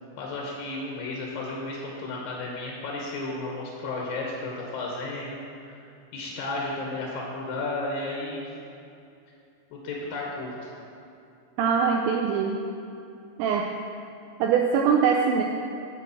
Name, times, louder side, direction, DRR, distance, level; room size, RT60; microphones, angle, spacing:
voice 1, 0.2-5.4 5.6-5.8 6.1-8.4 9.7-10.7, left 2 dB, 75° left, -2 dB, 2.2 m, -33 dB
voice 2, 11.6-12.6 13.4-13.7 14.4-15.4, right 6 dB, 80° right, 1 dB, 2.7 m, -22 dB
9.5 x 5.0 x 6.9 m, 2.6 s
omnidirectional pair, 5.4 m